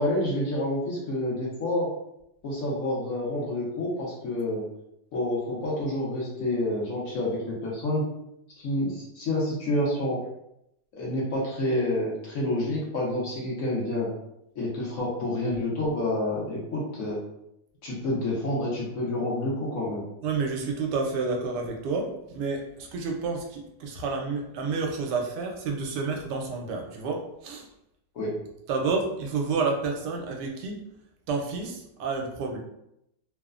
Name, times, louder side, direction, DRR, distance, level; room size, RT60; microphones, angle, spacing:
voice 1, 0.0-1.9 2.4-4.6 5.1-8.0 8.6-10.2 10.9-14.1 14.6-17.2 17.8-20.0 28.1-28.4, left 1 dB, 60° left, -5 dB, 1.0 m, -28 dB
voice 2, 20.2-27.6 28.7-30.8 31.3-32.6, right 4 dB, 85° right, 2 dB, 1.2 m, -30 dB
3.1 x 2.0 x 2.4 m, 0.80 s
omnidirectional pair, 1.8 m